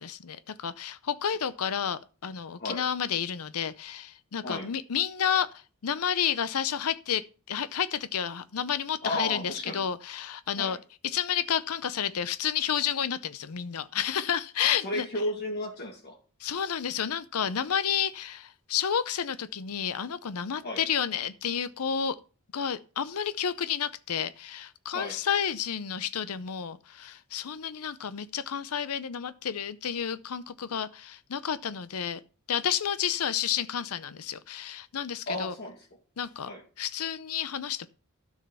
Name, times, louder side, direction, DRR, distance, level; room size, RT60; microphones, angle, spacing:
voice 1, 0.0-10.8 11.0-15.1 16.4-22.2 22.5-32.2 32.5-35.5 36.2-36.5 36.8-37.9, left 8 dB, 80° left, 0.6 m, -31 dB
voice 2, 9.0-9.8 10.6-10.8 14.8-16.2 20.6-20.8 24.9-25.2 35.3-35.8 36.5-36.6, left 1 dB, 50° left, 2.2 m, -33 dB
12.5 x 6.4 x 5.6 m
head